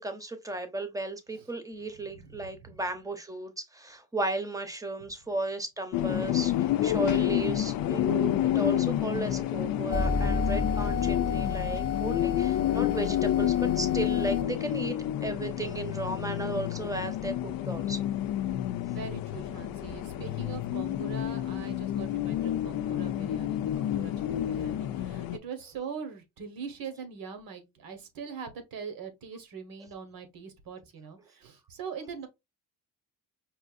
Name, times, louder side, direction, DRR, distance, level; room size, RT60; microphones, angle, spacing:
voice 1, 0.0-18.0, right 2 dB, 10° right, 0.7 m, -35 dB
voice 2, 2.1-2.8 9.8-10.0 18.9-32.3, right 6 dB, 75° right, 1.3 m, -42 dB
sound 1, 5.9-25.4, left 12 dB, 75° left, 0.5 m, -29 dB
sound 2, 9.9-14.4, left 3 dB, 45° left, 0.8 m, -32 dB
5.4 x 2.6 x 2.5 m
cardioid pair, 145°, 36 cm